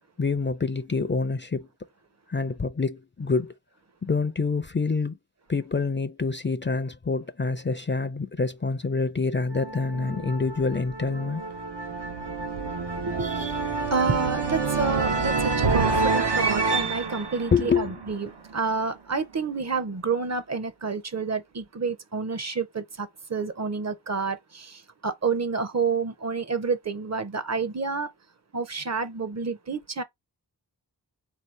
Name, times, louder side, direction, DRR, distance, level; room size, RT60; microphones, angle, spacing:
voice 1, 0.2-1.7 2.3-3.5 4.0-5.2 5.5-11.4 13.2-13.6 15.9-16.0 17.5-17.9, left 4 dB, 30° left, 0.4 m, -27 dB
sound 1, 9.5-18.5, right 4 dB, 85° right, 0.9 m, -28 dB
voice 2, 13.0-13.3 13.8-28.1 28.5-30.0, right 4 dB, 40° right, 0.6 m, -29 dB
4.1 x 2.8 x 3.1 m
wide cardioid pair, 75°, 40 cm